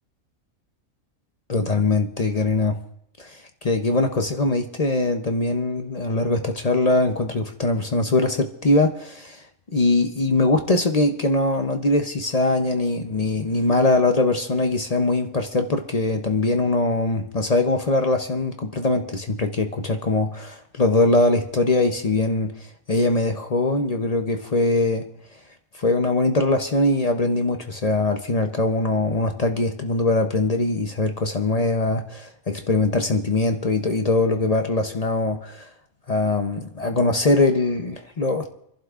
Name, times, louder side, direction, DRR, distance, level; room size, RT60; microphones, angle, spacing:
voice 1, 1.5-2.8 3.2-9.4 9.7-22.6 22.9-25.1 25.8-35.7 36.1-38.5, left 2 dB, 35° left, 0.7 m, -22 dB
28.5 x 11.5 x 2.5 m
omnidirectional pair, 1.4 m